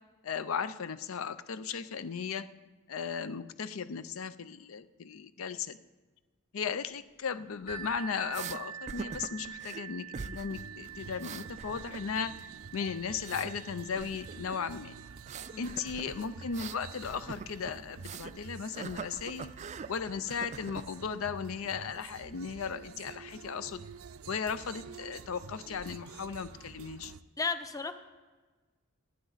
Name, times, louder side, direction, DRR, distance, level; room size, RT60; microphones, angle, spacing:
voice 1, 0.2-2.5 2.9-5.8 6.5-14.9 15.6-19.5 19.9-23.8 24.3-27.1, left 6 dB, 75° left, 13 dB, 0.5 m, -36 dB
sound 1, 7.7-23.2 24.0-24.1 24.6-24.7, right 9 dB, 45° left, 3.7 m, -49 dB
sound 2, 8.3-8.6 8.9-9.8 10.1-10.6 10.9-12.3 12.6-13.5 13.9-14.6 15.2-18.4 18.7-19.9 20.3-20.9, right 5 dB, 35° right, 0.4 m, -43 dB
sound 3, 10.5-27.2, right 5 dB, 85° right, 0.5 m, -49 dB
voice 2, 15.5-15.9 27.4-27.9, left 4 dB, 15° left, 9 dB, 0.7 m, -34 dB
18.5 x 11.0 x 4.0 m, 1.3 s
head